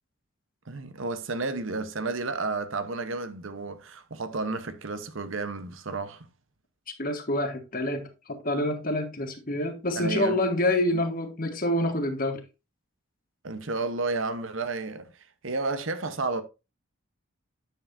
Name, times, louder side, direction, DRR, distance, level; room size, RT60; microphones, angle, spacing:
voice 1, 0.7-6.3 10.0-10.4 10.9-11.0 13.4-15.1 15.4-16.4, right 3 dB, 70° right, 1.0 m, -31 dB
voice 2, 7.0-12.4, left 1 dB, 45° left, 1.4 m, -27 dB
9.4 x 7.2 x 2.6 m
head